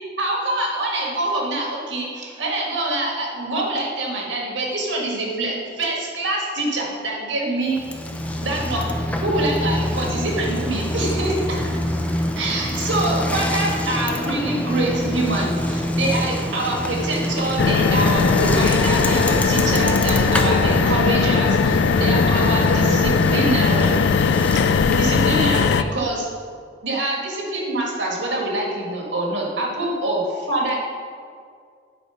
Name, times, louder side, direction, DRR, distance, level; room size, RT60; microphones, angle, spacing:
voice 1, 0.2-7.8 8.4-8.8 9.2-11.6 12.4-24.0 24.9-26.3 26.8-30.8, right 2 dB, 75° right, -2 dB, 1.8 m, -25 dB
Bicycle, 7.7-25.2, left 1 dB, 10° left, 0.5 m, -25 dB
sound 1, 17.6-25.8, left 5 dB, 65° left, 0.3 m, -19 dB
8.5 x 4.7 x 5.7 m, 2.2 s
head